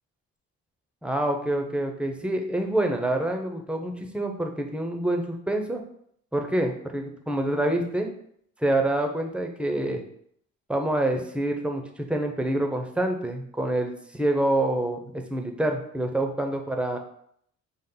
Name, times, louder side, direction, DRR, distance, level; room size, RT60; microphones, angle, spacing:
voice 1, 1.0-5.8 6.3-8.1 8.6-10.0 10.7-17.0, right 1 dB, 5° right, 4 dB, 0.6 m, -27 dB
5.4 x 2.0 x 3.8 m, 0.67 s
cardioid pair, 90°, 30 cm